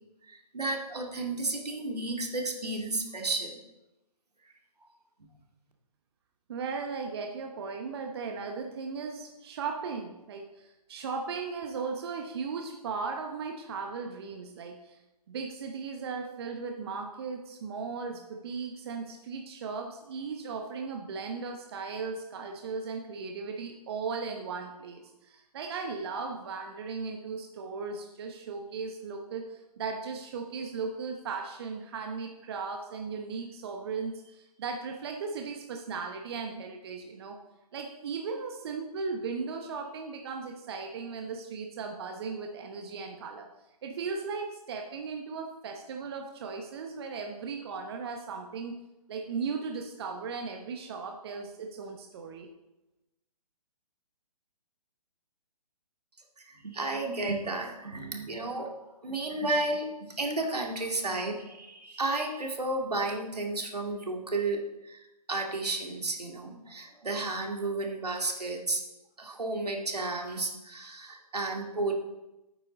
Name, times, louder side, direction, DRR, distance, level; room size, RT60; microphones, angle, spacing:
voice 1, 0.3-3.6 4.8-4.9 5.2-5.3 56.4-58.7 59.0-68.8 69.2-71.9, right 2 dB, 75° right, 2 dB, 2.3 m, -32 dB
voice 2, 6.5-15.0 15.3-37.4 37.7-43.5 43.8-48.8 49.1-52.5, right 5 dB, 40° right, 3 dB, 1.0 m, -37 dB
13.5 x 9.1 x 4.0 m, 0.97 s
figure-of-eight pair, 135°, 20 cm